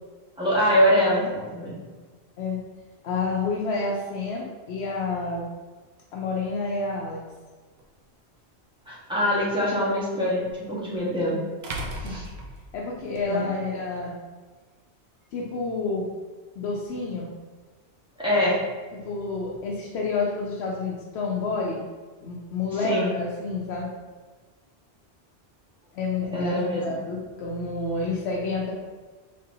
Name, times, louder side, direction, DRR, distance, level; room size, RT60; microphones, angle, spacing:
voice 1, 0.4-1.8 8.9-11.4 11.9-12.2 13.3-13.5 18.2-18.6 22.8-23.1 26.3-27.0, equal, 5° right, -9 dB, 1.3 m, -24 dB
voice 2, 3.0-5.5 6.1-7.2 12.0-12.2 12.7-14.1 15.3-16.1 16.6-17.3 18.9-21.8 22.2-23.9 25.9-26.5 26.8-28.7, left 3 dB, 80° left, -3 dB, 0.8 m, -29 dB
sound 1, 7.8-7.9 10.5-10.6 11.6-13.2, right 1 dB, 70° right, 0.9 m, -35 dB
4.1 x 3.4 x 2.6 m, 1.4 s
omnidirectional pair, 1.1 m